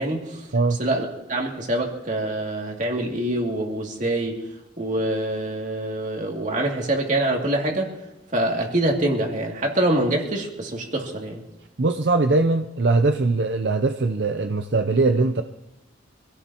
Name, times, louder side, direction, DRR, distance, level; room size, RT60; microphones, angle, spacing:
voice 1, 0.0-4.5 4.8-7.9 8.3-11.4, right 1 dB, 40° right, 0 dB, 2.6 m, -25 dB
voice 2, 11.8-15.4, right 3 dB, 65° right, 7 dB, 0.7 m, -21 dB
25.5 x 16.5 x 3.0 m, 1.0 s
head